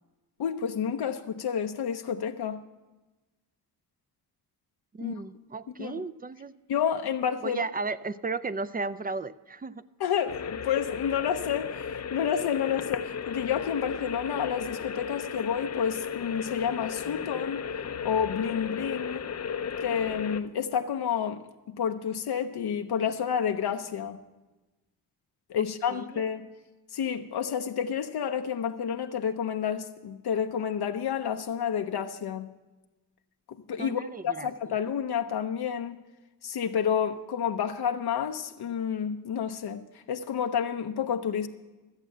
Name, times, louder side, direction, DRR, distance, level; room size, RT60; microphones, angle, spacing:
voice 1, 0.4-2.6 5.0-5.1 5.8-6.0 6.7-7.6 10.0-17.7 18.0-19.3 19.8-21.4 21.7-24.2 25.5-26.5 26.9-32.5 33.7-36.0 36.4-41.5, left 8 dB, 80° left, 0.7 m, -30 dB
voice 2, 4.9-6.5 7.4-9.8 25.6-26.2 33.8-34.5, right 4 dB, 25° right, 0.4 m, -35 dB
sound 1, 10.3-20.4, left 7 dB, 45° left, 0.5 m, -35 dB
14.0 x 8.1 x 7.3 m
wide cardioid pair, 100°, 38 cm